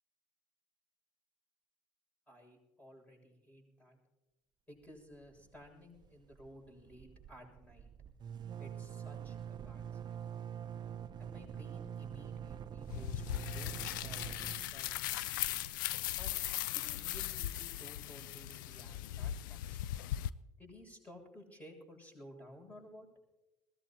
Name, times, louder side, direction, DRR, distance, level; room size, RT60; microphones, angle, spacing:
voice 1, 2.3-4.0 4.7-7.9 8.6-10.3 11.2-14.9 16.2-16.3 16.7-19.8 20.6-23.1, left 1 dB, 15° left, 1 dB, 7.1 m, -55 dB
sound 1, 5.1-5.7 5.9-6.1 6.3-17.0, right 8 dB, 40° right, 0.8 m, -46 dB
sound 2, 12.9-20.3, left 13 dB, 80° left, 0.4 m, -38 dB
21.0 x 17.0 x 2.9 m, 1.0 s
hypercardioid pair, 65°, 11 cm